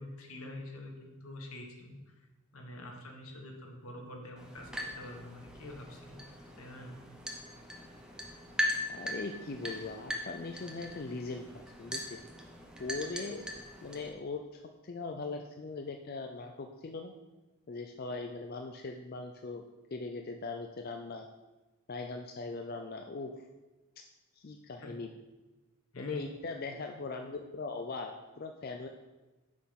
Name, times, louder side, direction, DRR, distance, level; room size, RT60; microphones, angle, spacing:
voice 1, 0.0-2.3 2.5-6.3 6.6-7.0 24.8-24.9 25.9-26.2, left 1 dB, 80° left, 2 dB, 1.5 m, -46 dB
sound 1, 4.4-14.1, left 1 dB, 5° right, 0.8 m, -40 dB
voice 2, 8.8-12.2 12.8-13.4 13.8-17.1 17.7-19.6 19.9-21.3 21.9-23.3 24.3-25.1 26.0-28.9, left 3 dB, 45° left, 4 dB, 0.4 m, -40 dB
6.1 x 5.7 x 5.8 m, 1.1 s
head